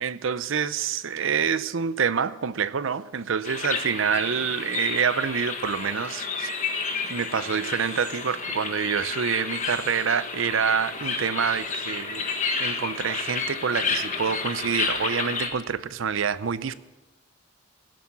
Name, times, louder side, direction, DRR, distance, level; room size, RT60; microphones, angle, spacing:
voice 1, 0.0-6.5 7.1-12.3 12.6-16.7, right 7 dB, 70° right, 16 dB, 0.6 m, -27 dB
sound 1, 3.4-15.5, left 4 dB, 35° left, 1.6 m, -31 dB
15.5 x 8.5 x 7.2 m, 1.1 s
head